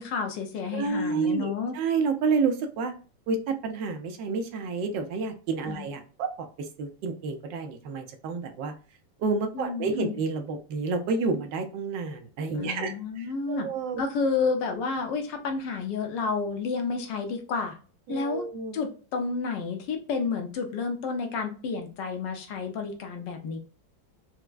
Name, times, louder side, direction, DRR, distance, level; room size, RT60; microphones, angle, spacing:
voice 1, 0.0-1.8 5.7-5.9 9.5-10.2 12.5-13.7 14.0-17.8 18.1-18.4 18.7-23.6, left 4 dB, 70° left, 4 dB, 1.3 m, -30 dB
voice 2, 0.7-2.9 3.3-6.5 6.8-8.7 9.2-14.0 18.1-18.7, right 4 dB, 75° right, 6 dB, 1.2 m, -29 dB
4.5 x 2.1 x 2.3 m, 0.37 s
omnidirectional pair, 2.1 m